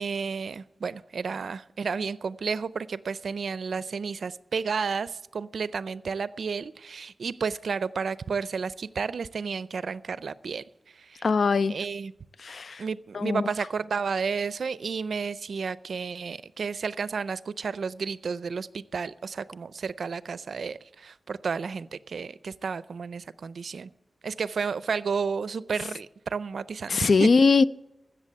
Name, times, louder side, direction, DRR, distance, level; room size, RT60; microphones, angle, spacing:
voice 1, 0.0-10.6 11.0-11.2 11.7-12.1 12.8-23.9 24.2-27.3, right 5 dB, 85° right, 17 dB, 0.5 m, -32 dB
voice 2, 11.2-11.8 12.4-12.8 13.1-13.5 26.9-27.6, left 4 dB, 70° left, 17 dB, 0.4 m, -21 dB
16.0 x 6.9 x 9.8 m, 0.94 s
wide cardioid pair, 85°, 0 cm